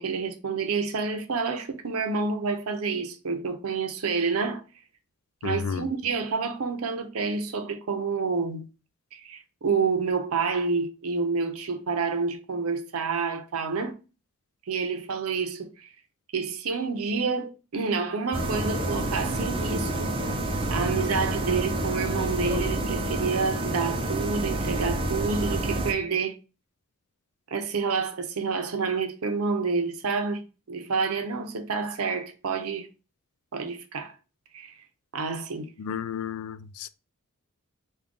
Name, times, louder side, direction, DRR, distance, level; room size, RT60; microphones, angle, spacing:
voice 1, 0.0-4.6 5.4-8.7 9.1-13.9 14.7-15.9 16.3-20.2 20.7-26.4 27.5-32.9 33.5-34.1 34.5-34.7 35.1-35.7, right 4 dB, 80° right, 0.6 m, -28 dB
voice 2, 5.4-5.8 35.8-36.9, left 7 dB, 85° left, 0.3 m, -32 dB
sound 1, 18.3-25.9, right 1 dB, 25° right, 0.4 m, -28 dB
3.5 x 2.3 x 3.6 m
head